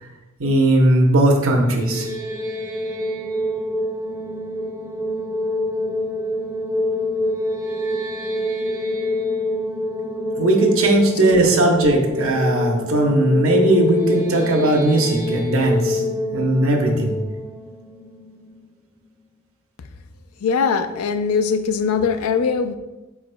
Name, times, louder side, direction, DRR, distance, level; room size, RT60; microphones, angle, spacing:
voice 1, 0.4-2.1 10.4-16.0 16.3-17.1, right 1 dB, 65° right, 1 dB, 0.8 m, -18 dB
sound 1, 1.6-18.7, left 1 dB, 15° right, 0.4 m, -26 dB
voice 2, 20.4-22.7, left 5 dB, 80° left, 9 dB, 0.4 m, -21 dB
5.1 x 4.7 x 2.2 m, 1.1 s
head